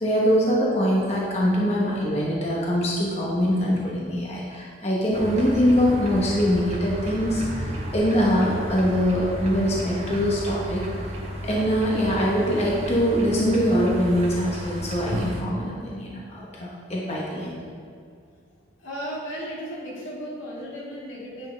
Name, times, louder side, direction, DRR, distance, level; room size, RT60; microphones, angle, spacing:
voice 1, 0.0-10.9 11.4-17.6, equal, 35° left, -4 dB, 1.0 m, -23 dB
sound 1, 5.1-15.4, equal, 30° right, 1.0 m, -33 dB
voice 2, 18.8-21.5, equal, 85° left, -4 dB, 2.1 m, -35 dB
10.0 x 6.0 x 3.4 m, 2.2 s
head